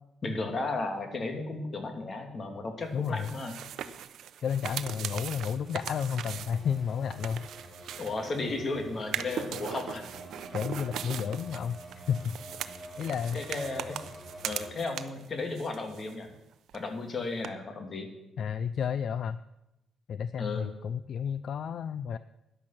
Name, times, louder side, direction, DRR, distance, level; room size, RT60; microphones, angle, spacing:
voice 1, 0.2-3.5 8.0-10.0 13.3-14.0 14.4-16.3 16.7-18.1 20.4-20.6, left 3 dB, 40° left, 4 dB, 2.8 m, -34 dB
voice 2, 2.9-3.3 4.4-7.5 10.5-11.8 12.1-12.4 13.0-13.4 18.4-19.4 20.1-22.2, left 7 dB, 60° left, 14 dB, 0.5 m, -31 dB
sound 1, 3.0-8.5 9.0-15.3 15.6-16.4 16.7-16.8 17.4-17.5, right 9 dB, 75° right, 0.8 m, -40 dB
sound 2, 5.2-14.7, right 1 dB, 5° left, 6.5 m, -47 dB
14.0 x 10.5 x 5.9 m, 0.92 s
cardioid pair, 90°, 0 cm